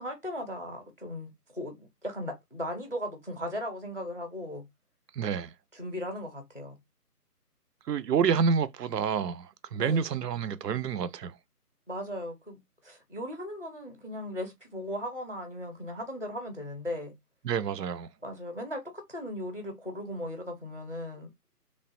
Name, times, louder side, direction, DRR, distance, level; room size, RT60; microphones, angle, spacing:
voice 1, 0.0-4.6 5.7-6.8 9.7-10.0 11.9-17.1 18.2-21.3, equal, 40° left, 0.5 m, -37 dB
voice 2, 5.1-5.5 7.9-11.4 17.4-18.1, right 6 dB, 90° right, 0.6 m, -28 dB
3.1 x 2.3 x 2.5 m
figure-of-eight pair, 175°, 47 cm